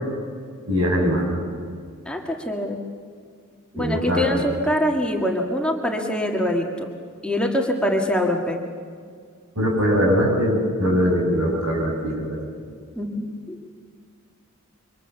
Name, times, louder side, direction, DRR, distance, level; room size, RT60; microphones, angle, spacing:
voice 1, 0.7-1.3 3.8-4.2 9.6-12.4, equal, 85° right, 0 dB, 7.5 m, -21 dB
voice 2, 2.1-2.8 3.7-6.9 7.2-8.6 13.0-13.6, left 1 dB, 5° left, 1 dB, 1.8 m, -24 dB
27.0 x 24.5 x 7.1 m, 2.1 s
head